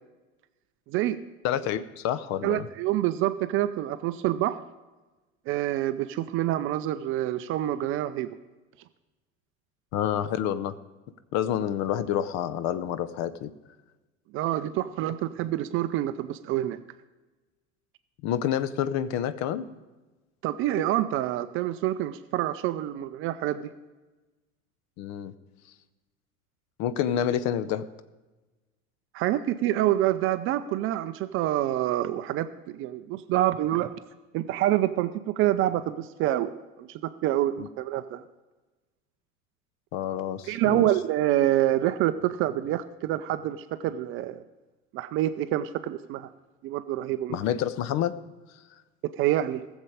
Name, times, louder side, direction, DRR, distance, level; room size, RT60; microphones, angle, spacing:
voice 1, 0.9-1.2 2.4-4.6 5.5-8.4 14.3-16.8 20.4-23.7 29.1-33.9 34.3-36.5 36.8-38.2 40.5-44.4 44.9-46.3 46.6-47.4 49.2-49.6, right 13 dB, 30° right, 12 dB, 0.5 m, -27 dB
voice 2, 1.4-2.7 9.9-10.8 11.3-13.5 18.2-19.7 25.0-25.3 26.8-27.9 37.6-37.7 39.9-40.9 47.3-48.2, left 10 dB, 40° left, 14 dB, 0.7 m, -28 dB
18.5 x 7.2 x 4.9 m, 1.2 s
figure-of-eight pair, 75°, 43 cm